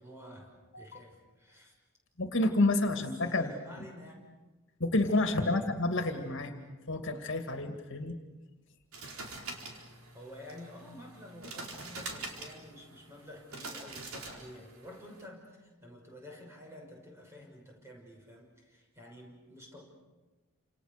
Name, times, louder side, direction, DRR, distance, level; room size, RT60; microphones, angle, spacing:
voice 1, 0.0-1.7 2.9-4.2 5.4-5.7 10.1-19.8, equal, 15° right, 0 dB, 6.1 m, -50 dB
voice 2, 2.2-3.5 3.8-3.9 4.8-6.5 6.9-8.2, left 2 dB, 60° left, 6 dB, 2.3 m, -29 dB
sound 1, 8.9-15.2, right 3 dB, 80° right, 4.5 m, -45 dB
29.5 x 27.5 x 6.8 m, 1.2 s
head